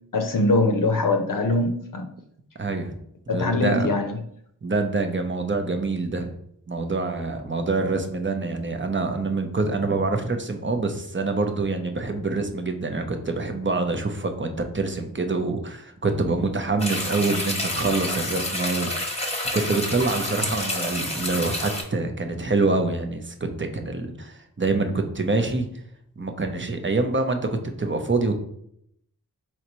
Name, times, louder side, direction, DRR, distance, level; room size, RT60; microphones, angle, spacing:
voice 1, 0.1-2.1 3.3-4.1, left 2 dB, 60° left, 4 dB, 0.6 m, -22 dB
voice 2, 2.6-3.0 3.3-3.9 4.6-6.3 6.7-19.1 19.5-25.6 26.2-28.4, right 3 dB, 30° right, 5 dB, 0.7 m, -26 dB
sound 1, 16.8-21.8, left 1 dB, 15° left, 1.0 m, -29 dB
4.5 x 3.9 x 3.0 m, 0.71 s
wide cardioid pair, 55°, 37 cm